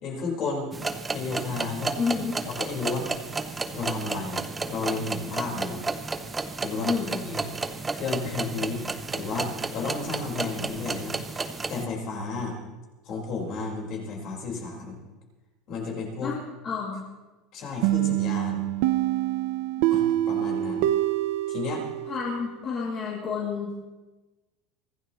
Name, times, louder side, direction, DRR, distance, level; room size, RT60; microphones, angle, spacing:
voice 1, 0.0-0.7 1.1-2.0 2.5-3.1 3.7-4.4 4.7-5.8 6.6-6.9 7.2-7.5 7.9-12.6 13.0-15.0 15.7-16.3 17.5-18.6 19.9-20.8 21.5-21.8, left 4 dB, 40° left, 0 dB, 4.5 m, -32 dB
sound 1, 0.7-11.8, right 3 dB, 10° right, 0.7 m, -32 dB
voice 2, 2.0-2.3 6.8-7.2 16.2-16.4 16.6-17.0 19.8-19.9 22.1-23.8, left 5 dB, 25° left, -5 dB, 2.6 m, -29 dB
sound 2, 17.8-22.5, right 14 dB, 60° right, 0.6 m, -26 dB
24.0 x 16.5 x 3.1 m, 1.1 s
cardioid pair, 170°, 0 cm